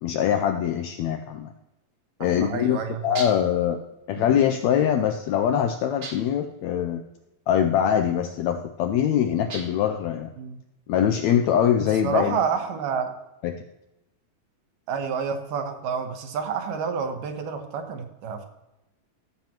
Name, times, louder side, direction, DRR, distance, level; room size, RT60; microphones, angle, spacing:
voice 1, 0.0-1.5 2.2-3.8 4.1-7.0 7.5-10.3 10.9-12.4 13.4-13.6, left 9 dB, 85° left, 6 dB, 1.6 m, -23 dB
voice 2, 2.2-3.2 4.2-4.5 10.4-10.6 11.8-13.1 14.9-18.5, right 6 dB, 75° right, 5 dB, 2.6 m, -29 dB
sound 1, 3.2-3.6 6.0-6.5 9.5-10.0, right 3 dB, 50° right, 1.9 m, -37 dB
15.0 x 7.5 x 3.0 m, 0.92 s
omnidirectional pair, 3.8 m